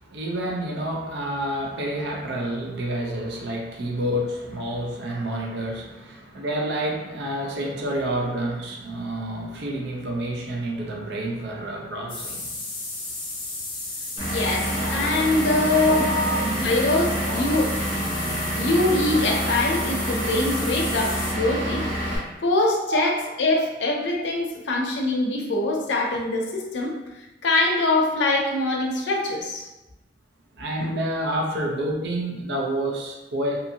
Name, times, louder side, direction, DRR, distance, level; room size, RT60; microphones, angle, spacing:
voice 1, 0.0-12.5 14.2-14.3 14.8-14.9 15.9-16.7 17.2-17.5 17.9-18.0 19.1-19.3 20.0-20.1 22.9-23.0 30.5-33.6, right 1 dB, 70° right, -1 dB, 0.6 m, -29 dB
sound 1, 12.1-21.3, left 2 dB, 30° left, 0.7 m, -34 dB
voice 2, 14.2-17.7 18.5-21.8 22.4-23.1 23.4-26.9 27.4-29.7, left 2 dB, 85° left, 0 dB, 0.5 m, -23 dB
Vehicle / Engine, 14.2-22.2, right 1 dB, 30° right, 1.0 m, -27 dB
2.7 x 2.5 x 2.7 m, 1.0 s
head